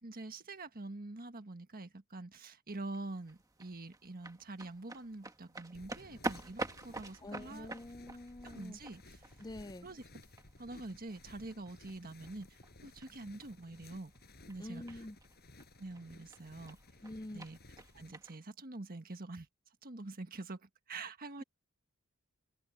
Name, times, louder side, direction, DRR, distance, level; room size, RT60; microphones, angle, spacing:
voice 1, 0.0-7.7 8.4-9.2 9.8-10.0 10.6-14.1 14.5-15.1 15.8-16.8 17.3-17.6 17.9-19.5 19.8-21.4, right 2 dB, 40° right, 1.6 m, -46 dB
sound 1, 2.7-18.4, right 2 dB, 15° right, 1.4 m, -48 dB
sound 2, 5.7-18.1, left 2 dB, 45° left, 5.2 m, -58 dB
voice 2, 7.2-8.8 9.4-9.9 14.6-15.2 17.0-17.5, left 1 dB, 20° left, 0.6 m, -46 dB
head